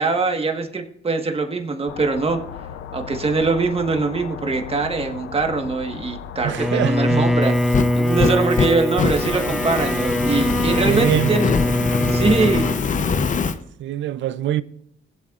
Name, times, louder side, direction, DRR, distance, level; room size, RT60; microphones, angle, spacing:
voice 1, 0.0-2.4 2.9-11.5 12.1-12.7, right 3 dB, 30° right, 1.5 m, -22 dB
sound 1, 1.9-8.3, left 8 dB, 80° left, 0.6 m, -36 dB
voice 2, 6.4-7.3 10.8-11.4 13.8-14.6, right 12 dB, 70° right, 0.5 m, -24 dB
Bowed string instrument, 6.6-12.9, equal, ahead, 0.5 m, -22 dB
Fire, 7.4-13.6, left 5 dB, 40° left, 0.7 m, -24 dB
20.5 x 7.8 x 2.5 m
cardioid pair, 90°, 20 cm